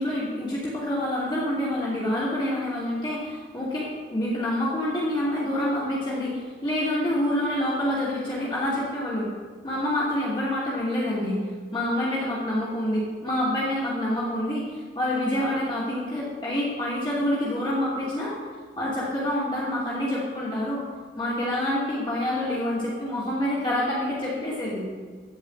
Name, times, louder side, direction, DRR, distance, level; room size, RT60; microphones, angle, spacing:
voice 1, 0.0-9.3 9.6-11.4 11.7-18.3 18.8-20.8 21.2-24.8, left 1 dB, 25° left, -8 dB, 2.7 m, -27 dB
13.5 x 5.6 x 8.5 m, 1.5 s
head